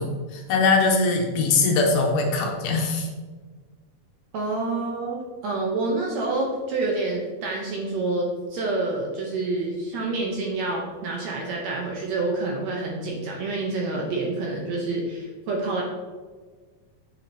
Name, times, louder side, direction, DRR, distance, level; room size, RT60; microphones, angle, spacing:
voice 1, 0.0-3.1, left 3 dB, 75° left, 1 dB, 2.3 m, -22 dB
voice 2, 4.3-15.8, right 2 dB, 70° right, -1 dB, 1.8 m, -28 dB
7.5 x 6.2 x 2.8 m, 1.4 s
omnidirectional pair, 3.8 m